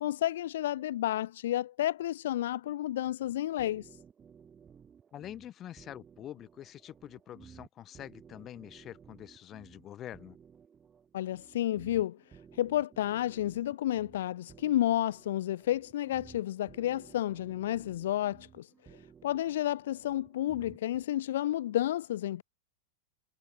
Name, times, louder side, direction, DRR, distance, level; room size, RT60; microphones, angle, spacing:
voice 1, 0.0-4.0 11.1-22.4, left 13 dB, 55° left, 0.4 m, -31 dB
sound 1, 3.6-21.0, right 7 dB, 20° right, 6.5 m, -56 dB
voice 2, 5.1-10.4, left 11 dB, 30° left, 4.4 m, -46 dB
figure-of-eight pair, 95°, 0 cm